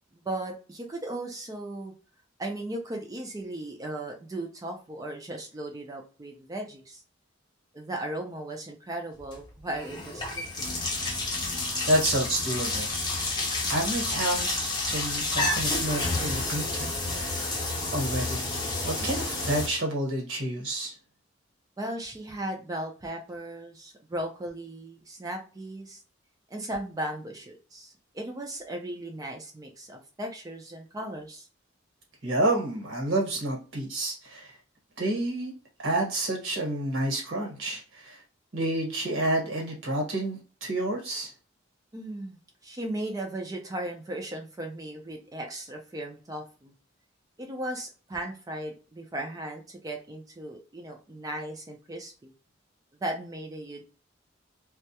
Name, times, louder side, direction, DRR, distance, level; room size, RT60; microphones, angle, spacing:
voice 1, 0.1-1.9 2.4-7.0 7.7-10.8 21.8-26.0 26.5-31.5 41.9-46.7 47.4-52.3 53.0-53.8, right 1 dB, 20° right, 2 dB, 0.4 m, -37 dB
sound 1, 9.2-9.4 9.7-19.7, left 2 dB, 20° left, 0.7 m, -30 dB
voice 2, 11.9-13.4 13.7-17.5 17.9-20.9 32.2-34.5 35.0-35.5 35.8-38.2 38.5-41.3, right 1 dB, 70° right, 0 dB, 1.1 m, -29 dB
2.2 x 2.0 x 2.7 m, 0.35 s
head